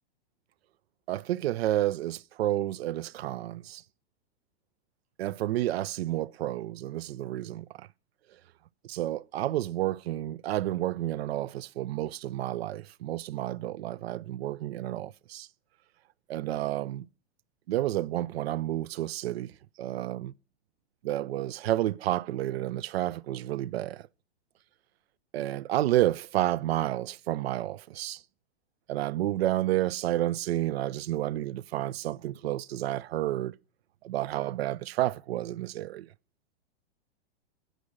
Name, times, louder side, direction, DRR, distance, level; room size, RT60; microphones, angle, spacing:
voice 1, 1.1-3.8 5.2-7.9 8.9-15.5 16.3-17.1 17.7-19.5 19.8-20.3 21.0-24.0 25.3-28.2 28.9-33.6 34.0-36.1, right 14 dB, 70° right, 0.6 m, -30 dB
12.5 x 10.0 x 6.3 m
hypercardioid pair, 145°, 32 cm